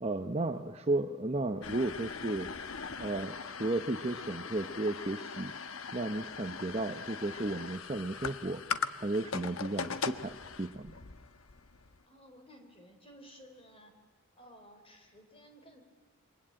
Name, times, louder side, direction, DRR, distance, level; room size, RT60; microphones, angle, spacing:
voice 1, 0.0-2.5 3.0-5.5 5.9-8.6 9.0-10.9, right 2 dB, 30° right, 7 dB, 0.9 m, -34 dB
sound 1, 1.6-12.0, left 5 dB, 70° left, 1.1 m, -40 dB
voice 2, 12.1-13.9 14.4-15.8, equal, 25° left, 5 dB, 4.1 m, -55 dB
27.5 x 23.5 x 8.8 m, 1.3 s
head